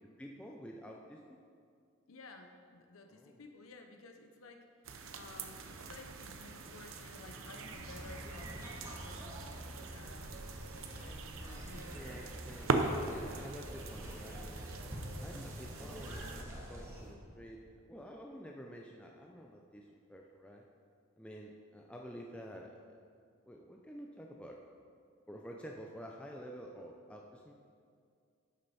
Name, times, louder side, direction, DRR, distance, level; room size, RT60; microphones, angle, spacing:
voice 1, 0.2-1.4 3.1-3.4 11.9-12.7 13.1-20.6 21.2-22.8 23.4-24.6 25.3-27.5, equal, 5° left, 0 dB, 0.4 m, -50 dB
voice 2, 2.1-10.4 10.9-11.9, left 3 dB, 80° left, 5 dB, 0.7 m, -54 dB
sound 1, 4.8-16.4, right 3 dB, 70° right, 0.7 m, -41 dB
sound 2, 7.7-17.1, equal, 15° right, 1.4 m, -46 dB
11.5 x 6.4 x 4.2 m, 2.2 s
head